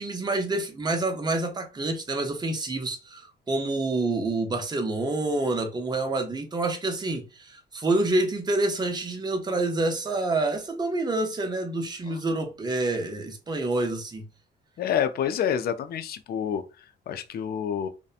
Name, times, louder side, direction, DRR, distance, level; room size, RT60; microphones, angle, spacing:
voice 1, 0.0-14.3, right 2 dB, 20° right, 0.6 m, -27 dB
voice 2, 14.8-16.6 17.1-17.9, left 8 dB, 50° left, 0.4 m, -28 dB
2.7 x 2.1 x 2.4 m
cardioid pair, 90°, 20 cm